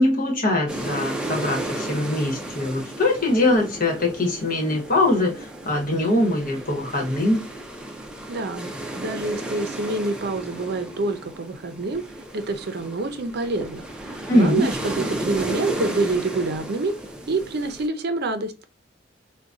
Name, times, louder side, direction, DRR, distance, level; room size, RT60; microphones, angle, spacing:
voice 1, 0.0-7.4 14.3-14.7, left 1 dB, 50° left, 1.2 m, -22 dB
sound 1, 0.7-17.9, right 1 dB, 5° right, 0.5 m, -34 dB
voice 2, 8.3-8.7 8.9-12.0 12.3-16.9 17.3-18.6, right 3 dB, 60° right, 0.5 m, -27 dB
3.8 x 2.2 x 2.4 m
head